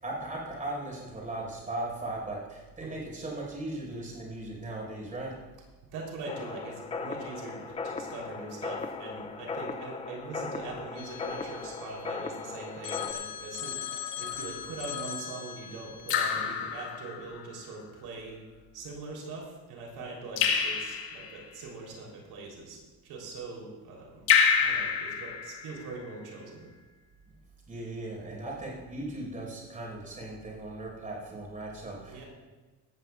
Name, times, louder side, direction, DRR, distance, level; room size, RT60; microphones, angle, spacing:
voice 1, 0.0-5.4 27.7-32.3, right 2 dB, 20° right, -2 dB, 4.8 m, -38 dB
voice 2, 5.9-18.4 18.7-24.2 24.6-26.7 32.1-32.2, right 3 dB, 75° right, -2 dB, 3.6 m, -42 dB
sound 1, 6.3-13.1, left 4 dB, 15° left, 0.3 m, -38 dB
Telephone, 11.0-12.4 12.8-16.2, left 9 dB, 55° left, 1.4 m, -40 dB
Raindrop / Drip, 14.3-14.8 16.1-17.4 20.4-21.5 24.3-26.0, left 6 dB, 75° left, 1.7 m, -27 dB
17.5 x 14.0 x 2.4 m, 1.3 s
cardioid pair, 165°, 38 cm